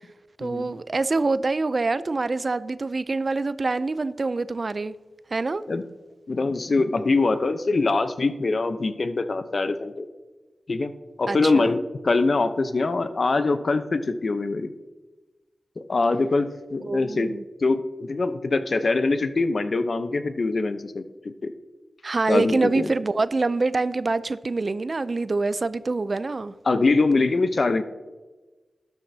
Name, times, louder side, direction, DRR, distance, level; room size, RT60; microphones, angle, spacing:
voice 1, 0.4-4.9 5.3-5.6 11.3-11.7 16.8-17.4 22.0-26.5, right 3 dB, 50° right, 15 dB, 0.4 m, -25 dB
voice 2, 6.3-10.1 10.7-10.9 11.2-14.7 15.8-17.3 17.6-21.0 21.4-21.5 22.3-22.9 26.6-27.8, left 3 dB, 60° left, 10 dB, 0.8 m, -23 dB
12.5 x 10.5 x 2.8 m, 1.2 s
cardioid pair, 55°, 0 cm